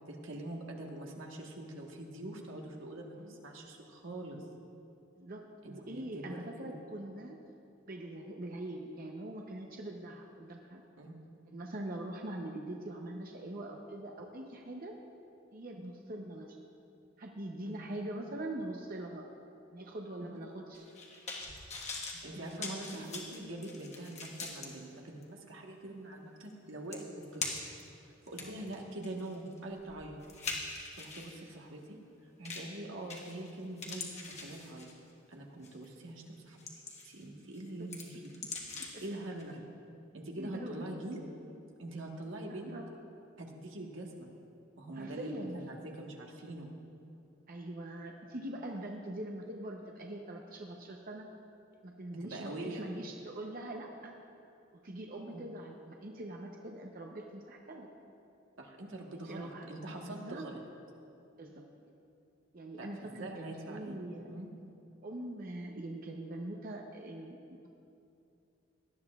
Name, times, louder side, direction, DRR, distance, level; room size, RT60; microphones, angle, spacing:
voice 1, 0.1-4.4 5.6-6.8 11.0-11.2 15.8-15.9 17.6-17.9 20.2-20.4 22.2-27.0 27.3-27.6 28.3-30.2 31.0-32.0 32.4-34.9 35.3-36.6 37.0-38.4 39.0-39.6 40.1-41.2 41.8-42.7 43.4-44.3 44.8-46.7 52.2-52.8 55.3-55.5 58.6-60.6 62.8-64.0 64.2-64.5, right 1 dB, 80° right, 1 dB, 1.4 m, -44 dB
voice 2, 5.2-7.4 7.9-10.8 11.5-14.9 15.5-16.6 17.2-19.3 19.7-20.9 22.3-23.2 28.4-28.6 37.7-37.9 38.1-38.5 38.8-39.0 40.4-40.9 42.5-42.9 44.9-45.6 47.5-51.3 51.8-54.1 54.8-57.9 59.1-59.7 60.0-60.5 61.4-61.7 62.5-64.3 65.0-67.7, right 1 dB, 50° right, 1 dB, 0.8 m, -43 dB
sound 1, 20.7-24.7 25.2-25.3 26.5-26.6 26.9-27.8 28.3-31.4 32.5-32.8 33.1-33.5 33.8-35.1 35.6-35.9 36.3-37.2 37.5-39.1 39.4-39.5, left 4 dB, 35° left, 1.5 m, -42 dB
18.0 x 12.0 x 2.4 m, 2.7 s
head